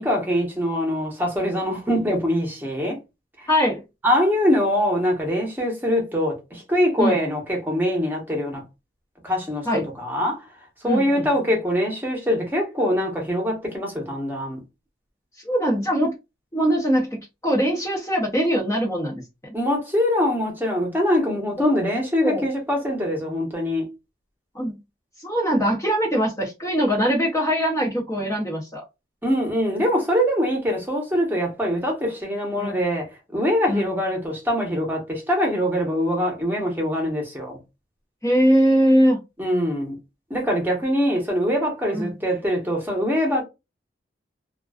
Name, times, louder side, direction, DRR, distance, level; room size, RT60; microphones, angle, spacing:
voice 1, 0.0-3.0 3.4-3.5 4.0-8.6 9.2-10.5 10.8-14.6 19.5-23.9 29.2-37.6 39.4-40.0 40.3-43.4, equal, 10° right, 0.9 m, -23 dB
voice 2, 3.5-3.8 7.0-7.2 9.7-9.9 10.8-11.3 15.4-16.1 16.5-19.2 21.6-21.7 22.2-22.4 24.5-24.8 25.2-28.8 32.6-32.8 33.7-33.9 38.2-39.2 41.9-42.1, equal, 15° left, 0.6 m, -21 dB
2.4 x 2.2 x 2.3 m
head